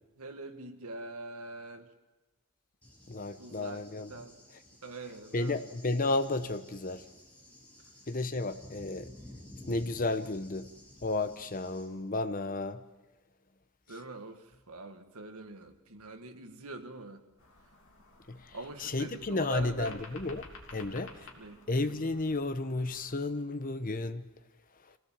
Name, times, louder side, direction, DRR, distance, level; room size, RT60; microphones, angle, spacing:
voice 1, 0.2-1.9 3.4-4.4 4.8-5.6 13.9-17.2 18.5-20.0 20.8-21.1 21.3-21.6, right 3 dB, 85° right, 1.8 m, -44 dB
Cricket / Thunder, 2.8-11.8, left 1 dB, 5° left, 6.2 m, -53 dB
voice 2, 3.1-4.1 5.3-7.1 8.1-9.1 9.7-10.7 11.0-12.8 18.3-21.3 21.7-24.3 24.8-25.0, left 2 dB, 40° left, 0.9 m, -33 dB
sound 1, 17.4-23.1, left 2 dB, 60° left, 3.3 m, -53 dB
26.0 x 17.5 x 7.4 m
head